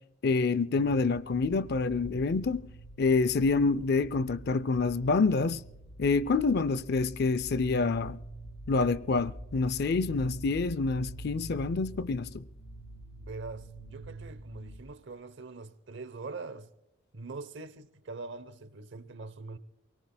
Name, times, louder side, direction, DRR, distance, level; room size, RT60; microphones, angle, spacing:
voice 1, 0.2-2.6 3.0-5.6 6.0-8.2 8.7-12.4, left 4 dB, 50° left, 0.4 m, -27 dB
sound 1, 0.7-14.8, right 1 dB, 85° left, 4.5 m, -46 dB
voice 2, 13.2-16.7 17.1-19.6, right 3 dB, 55° right, 0.8 m, -43 dB
28.5 x 18.0 x 2.2 m
head